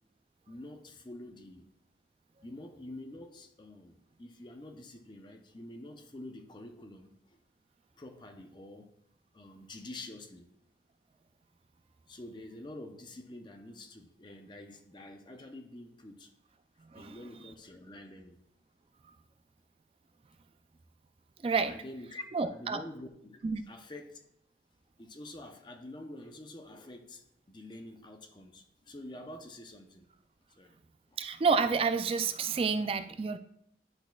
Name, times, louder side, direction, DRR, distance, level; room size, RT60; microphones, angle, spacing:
voice 1, 0.5-1.7 2.4-7.4 8.0-8.9 9.3-10.5 12.1-16.3 16.9-18.4 21.7-23.4 23.7-24.2 25.0-30.1 30.5-30.8 31.1-31.2 33.1-33.2, left 1 dB, 25° left, 5 dB, 0.6 m, -47 dB
voice 2, 21.4-21.7 22.3-22.8 23.4-23.6 31.2-33.4, right 5 dB, 30° right, 10 dB, 0.3 m, -29 dB
10.5 x 6.1 x 2.3 m, 0.74 s
head